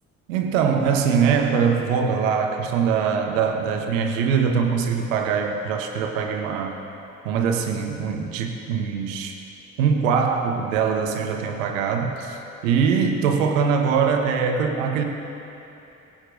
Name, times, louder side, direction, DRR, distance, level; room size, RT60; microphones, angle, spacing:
voice 1, 0.3-6.7 7.2-9.3 9.8-15.0, right 6 dB, 70° right, 4 dB, 1.2 m, -22 dB
22.0 x 8.8 x 2.6 m, 2.9 s
figure-of-eight pair, 45°, 41 cm